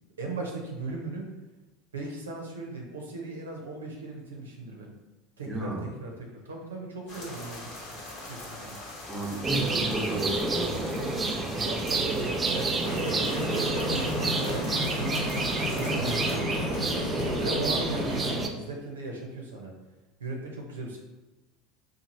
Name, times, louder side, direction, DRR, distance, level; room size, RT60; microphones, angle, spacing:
voice 1, 0.2-1.3 1.9-4.9 5.4-8.8 11.5-12.8 13.3-16.6 17.2-19.7 20.2-21.0, right 3 dB, 85° right, 0 dB, 0.6 m, -38 dB
voice 2, 5.5-6.0 9.1-11.1, right 1 dB, 10° right, -1 dB, 0.8 m, -33 dB
sound 1, 7.1-16.4, left 1 dB, 45° left, 1.0 m, -42 dB
sound 2, 9.4-18.5, right 2 dB, 25° right, 0.4 m, -29 dB
sound 3, 12.8-18.4, left 1 dB, 85° left, 1.0 m, -33 dB
3.0 x 2.3 x 4.1 m, 1.1 s
hypercardioid pair, 75°, 0 cm